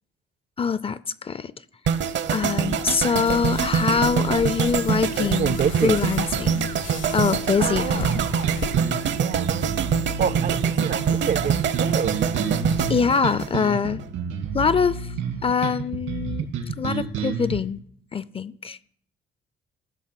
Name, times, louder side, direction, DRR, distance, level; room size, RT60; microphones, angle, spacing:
voice 1, 0.6-1.5 2.3-6.7 7.1-8.2 12.9-14.0 14.5-15.1 15.4-16.5 16.8-17.8 18.1-18.8, left 6 dB, 30° left, 0.4 m, -24 dB
sound 1, 1.9-14.0 14.3-14.6, right 7 dB, 65° right, 0.8 m, -25 dB
sound 2, 3.2-8.7, left 7 dB, 75° left, 1.2 m, -36 dB
voice 2, 5.2-6.0 7.6-8.0 9.2-9.5 10.2-12.2, right 8 dB, 50° right, 0.4 m, -27 dB
sound 3, 8.0-17.6, right 6 dB, 85° right, 2.2 m, -30 dB
14.5 x 6.3 x 5.8 m
cardioid pair, 90°, 20 cm